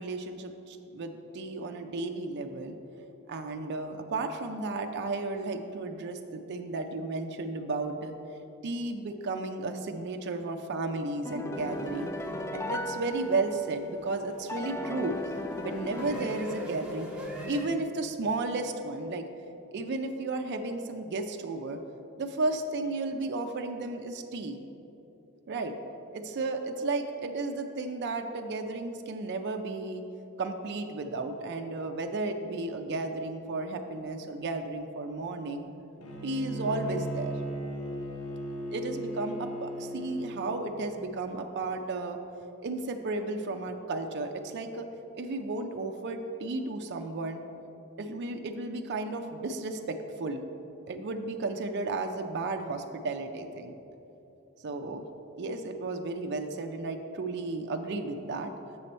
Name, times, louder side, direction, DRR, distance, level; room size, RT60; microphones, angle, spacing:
voice 1, 0.0-2.8 3.3-8.1 8.6-12.1 12.5-15.2 15.6-17.1 17.4-19.2 19.7-21.8 22.2-24.6 25.5-25.7 26.1-30.0 30.4-35.7 36.2-37.3 38.7-42.2 42.6-44.9 45.1-47.4 48.0-50.4 50.9-53.7 54.6-55.1 55.4-58.5, right 3 dB, 50° right, 5 dB, 0.4 m, -33 dB
sound 1, 11.3-13.9 14.5-17.0, left 2 dB, 15° left, 0.3 m, -37 dB
sound 2, 11.5-17.7, equal, 5° right, 0.8 m, -43 dB
Bowed string instrument, 36.0-40.5, right 1 dB, 75° left, 0.9 m, -36 dB
6.9 x 6.7 x 4.2 m, 3.0 s
head